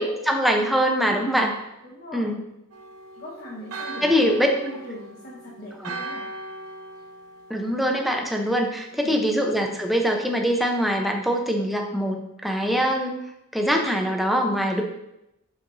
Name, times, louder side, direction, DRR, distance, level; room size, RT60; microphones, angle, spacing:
voice 1, 0.3-1.5 2.1-2.4 4.0-4.5 5.8-5.9 7.5-13.2 13.5-14.8, equal, ahead, 1 dB, 0.7 m, -23 dB
voice 2, 1.0-1.5 1.8-2.3 3.2-6.3 8.9-9.1, equal, 50° left, -6 dB, 1.2 m, -39 dB
Church bell, 2.7-8.4, right 2 dB, 70° right, 0.8 m, -39 dB
6.9 x 5.7 x 2.6 m, 0.86 s
head